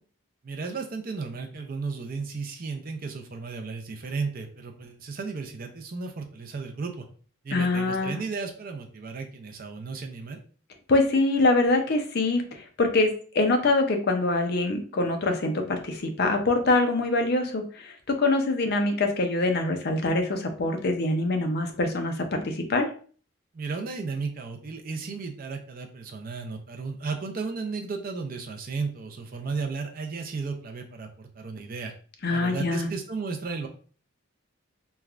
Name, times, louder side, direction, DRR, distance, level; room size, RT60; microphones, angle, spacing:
voice 1, 0.4-7.0 7.4-10.4 23.5-31.9 32.3-33.7, right 4 dB, 40° right, 4 dB, 0.4 m, -34 dB
voice 2, 7.5-8.2 10.9-22.9 32.2-32.9, left 2 dB, 50° left, 4 dB, 0.5 m, -24 dB
3.1 x 2.3 x 2.4 m, 0.42 s
head